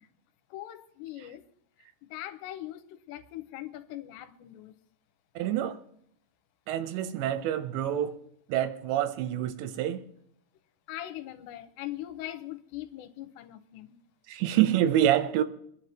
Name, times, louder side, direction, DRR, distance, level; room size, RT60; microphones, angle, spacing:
voice 1, 0.5-1.4 2.1-4.8 10.9-14.0, left 14 dB, 85° left, 2.9 m, -41 dB
voice 2, 5.4-5.8 6.7-8.2 8.5-10.0 14.3-15.4, right 11 dB, 85° right, 3.1 m, -27 dB
24.5 x 10.5 x 3.0 m
omnidirectional pair, 5.0 m